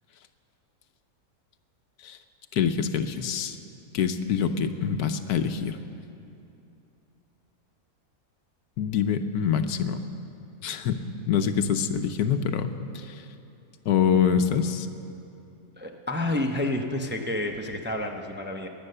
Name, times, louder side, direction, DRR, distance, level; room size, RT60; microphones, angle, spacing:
voice 1, 2.5-3.6 3.9-5.8 8.8-10.0 10.6-13.1 13.9-14.9, left 7 dB, 85° left, 9 dB, 1.3 m, -25 dB
voice 2, 15.8-18.7, left 1 dB, 10° right, 2 dB, 0.6 m, -29 dB
21.0 x 8.9 x 6.7 m, 2.7 s
omnidirectional pair, 1.6 m